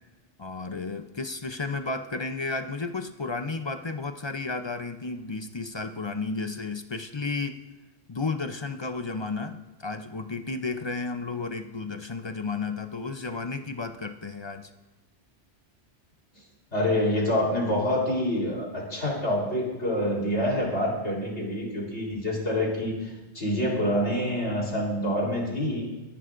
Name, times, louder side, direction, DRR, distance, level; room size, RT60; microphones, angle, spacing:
voice 1, 0.4-7.6 8.1-14.7, left 3 dB, 40° left, 7 dB, 0.4 m, -33 dB
voice 2, 16.7-25.8, left 1 dB, 70° left, -3 dB, 3.9 m, -27 dB
23.0 x 11.0 x 2.5 m, 1.1 s
omnidirectional pair, 1.2 m